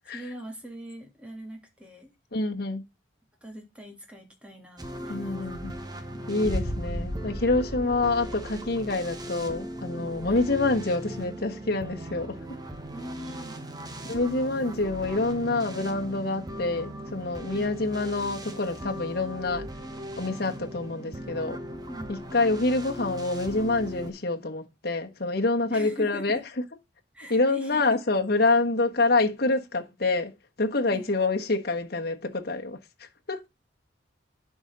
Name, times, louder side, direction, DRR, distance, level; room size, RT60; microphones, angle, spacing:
voice 1, 0.1-2.1 3.4-5.4 6.1-6.3 10.2-10.5 12.9-13.6 17.5-17.8 21.9-22.2 25.7-26.4 27.1-28.0 30.9-31.1, equal, 5° right, 3.1 m, -42 dB
voice 2, 2.3-2.8 5.1-5.7 6.3-12.6 14.0-19.7 20.2-21.6 22.1-26.4 27.3-30.3 30.6-32.8 33.3-33.5, left 3 dB, 55° left, 1.4 m, -27 dB
sound 1, 4.8-24.1, right 1 dB, 20° right, 1.3 m, -39 dB
Boom, 6.4-9.4, equal, 20° left, 2.7 m, -34 dB
11.0 x 5.0 x 4.0 m
head